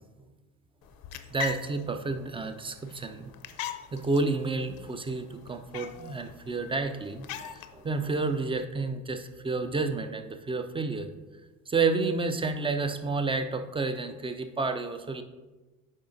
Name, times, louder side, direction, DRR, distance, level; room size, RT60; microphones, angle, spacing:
sound 1, 0.8-8.6, left 9 dB, 50° left, 0.6 m, -43 dB
voice 1, 1.3-3.3 3.9-11.1 11.7-15.2, right 3 dB, 15° right, 7 dB, 0.3 m, -30 dB
8.7 x 4.9 x 2.6 m, 1.2 s
hypercardioid pair, 80°, 47 cm